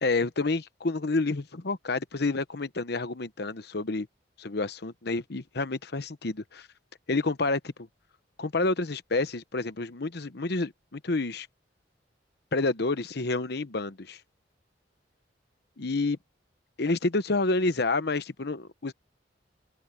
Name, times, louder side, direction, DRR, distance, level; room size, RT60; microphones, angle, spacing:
voice 1, 0.0-4.1 4.4-6.7 7.1-7.9 8.4-11.5 12.5-14.2 15.8-16.2 16.8-18.9, left 3 dB, 65° left, 1.0 m, -29 dB
open air
head